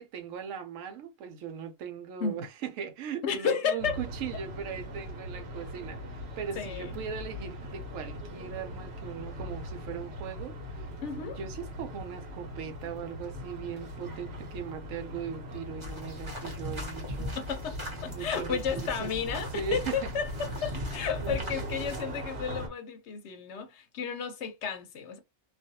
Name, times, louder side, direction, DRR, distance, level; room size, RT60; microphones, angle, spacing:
voice 1, 0.0-10.9 11.2-17.4 18.1-20.1 20.7-20.9 21.2-21.5, right 7 dB, 80° right, 0.9 m, -39 dB
voice 2, 3.2-4.0 6.6-6.9 11.0-11.4 17.4-17.8 18.0-25.2, left 6 dB, 65° left, 0.8 m, -32 dB
sound 1, 3.8-22.7, equal, 60° right, 1.0 m, -40 dB
sound 2, 15.8-22.0, equal, 25° right, 0.8 m, -39 dB
2.4 x 2.2 x 2.6 m
omnidirectional pair, 1.3 m